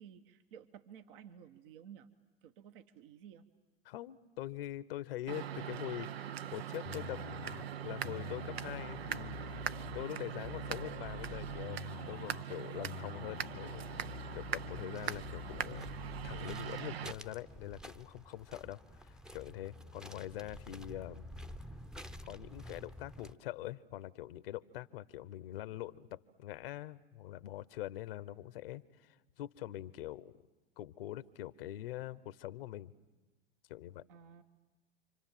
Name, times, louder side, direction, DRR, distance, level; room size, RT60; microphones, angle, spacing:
voice 1, 0.0-2.1 2.4-3.5 12.7-12.8 34.1-34.4, right 8 dB, 60° right, 8 dB, 1.3 m, -54 dB
voice 2, 3.8-9.7 9.9-13.9 14.3-21.3 22.2-30.4 30.8-32.9 33.7-34.0, left 14 dB, 65° left, 17 dB, 1.0 m, -44 dB
sound 1, 5.3-17.1, right 10 dB, 80° right, 0.9 m, -41 dB
sound 2, 6.9-16.5, left 12 dB, 35° left, 0.8 m, -48 dB
sound 3, 15.0-23.3, equal, ahead, 0.8 m, -51 dB
28.5 x 25.0 x 7.5 m, 1.1 s
hypercardioid pair, 95°, 31 cm